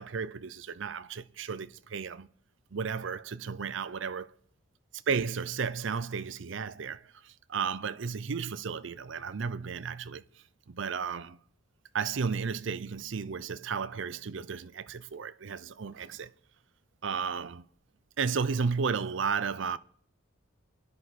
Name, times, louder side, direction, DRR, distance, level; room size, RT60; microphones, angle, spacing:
voice 1, 0.0-2.3 2.7-4.3 4.9-10.2 10.7-11.4 11.9-16.3 17.0-17.7 18.2-19.8, right 5 dB, 65° right, 0.6 m, -33 dB
29.0 x 10.5 x 4.1 m
head